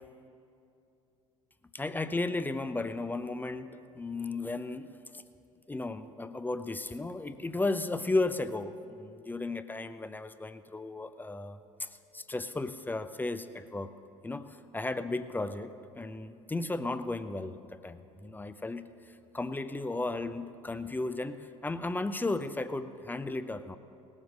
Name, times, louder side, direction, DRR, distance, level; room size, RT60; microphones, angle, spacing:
voice 1, 1.7-5.2 5.7-13.9 14.2-23.8, left 2 dB, 10° left, 11 dB, 0.6 m, -35 dB
18.5 x 7.4 x 6.3 m, 2.6 s
figure-of-eight pair, 65°, 16 cm